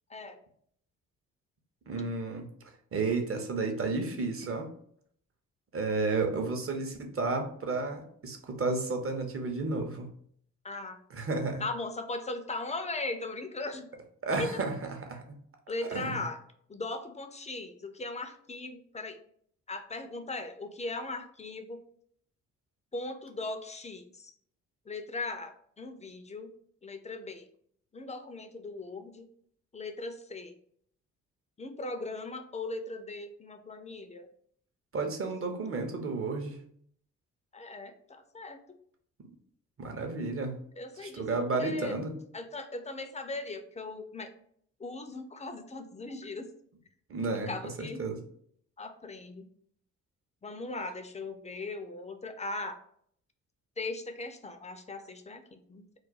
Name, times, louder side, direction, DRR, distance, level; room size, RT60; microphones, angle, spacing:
voice 1, 1.9-2.5 2.9-4.7 5.7-10.1 11.1-11.6 14.2-15.2 15.9-16.2 34.9-36.6 39.8-40.6 41.0-42.1 47.1-47.5 47.8-48.2, right 3 dB, 35° right, 4 dB, 0.8 m, -32 dB
voice 2, 10.6-11.0 11.6-13.9 14.4-14.6 15.7-16.4 16.7-19.2 19.7-21.8 22.9-24.3 24.9-26.5 26.8-27.5 27.9-29.3 29.7-30.5 31.6-34.3 37.5-38.8 40.8-42.0 42.3-44.3 44.8-46.5 47.5-48.0 48.8-49.5 50.4-52.8 53.8-55.8, left 2 dB, 20° left, 7 dB, 0.4 m, -38 dB
2.4 x 2.2 x 3.9 m, 0.64 s
hypercardioid pair, 50°, 38 cm